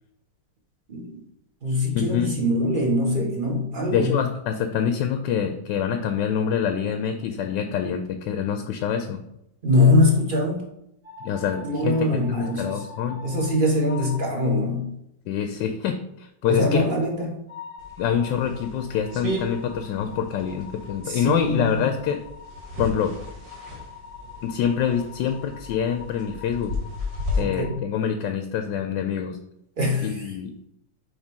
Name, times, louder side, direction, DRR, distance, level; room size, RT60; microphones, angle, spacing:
voice 1, 0.9-1.2 1.6-4.2 9.6-10.7 11.6-12.8 13.2-14.9 16.4-17.4 21.0-21.9 27.4-27.8 29.8-30.3, left 2 dB, 30° right, -1 dB, 1.3 m, -23 dB
voice 2, 1.9-2.3 3.9-9.2 11.2-13.2 15.3-16.9 18.0-22.2 22.8-23.2 24.4-26.8 27.4-29.4 30.0-30.6, left 8 dB, 85° left, 7 dB, 1.3 m, -26 dB
sound 1, 11.0-13.6 13.8-14.3 17.5-27.8, left 5 dB, 65° right, 2.6 m, -44 dB
sound 2, 17.8-27.4, left 2 dB, 80° right, 2.4 m, -35 dB
6.5 x 3.3 x 4.7 m, 0.79 s
omnidirectional pair, 1.9 m